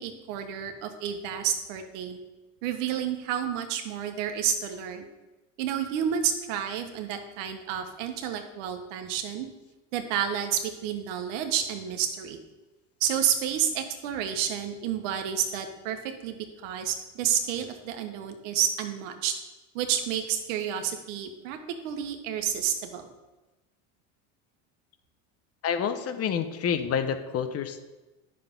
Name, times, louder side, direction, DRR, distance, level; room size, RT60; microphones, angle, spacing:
voice 1, 0.0-2.2 2.6-5.1 5.6-9.5 9.9-12.4 13.0-16.4 16.6-19.3 19.7-21.6 21.8-23.1, right 9 dB, 80° right, 6 dB, 1.4 m, -30 dB
voice 2, 25.6-27.8, left 7 dB, 40° left, 9 dB, 1.0 m, -28 dB
9.9 x 6.6 x 5.4 m, 1.1 s
supercardioid pair, 115°, 36 cm